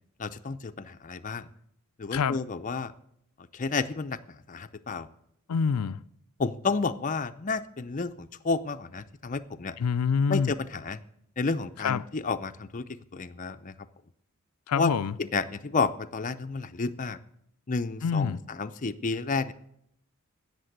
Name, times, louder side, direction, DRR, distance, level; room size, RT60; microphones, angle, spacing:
voice 1, 0.2-1.5 2.0-2.9 3.5-4.2 4.5-5.1 6.4-9.7 10.3-11.0 11.4-12.8 13.1-13.7 14.8-14.9 15.2-17.2 17.7-19.5, left 4 dB, 35° left, 0.5 m, -31 dB
voice 2, 5.5-6.0 9.8-10.5 11.8-12.0 14.7-15.1 18.0-18.4, left 6 dB, 85° left, 0.4 m, -26 dB
16.5 x 6.8 x 7.9 m
head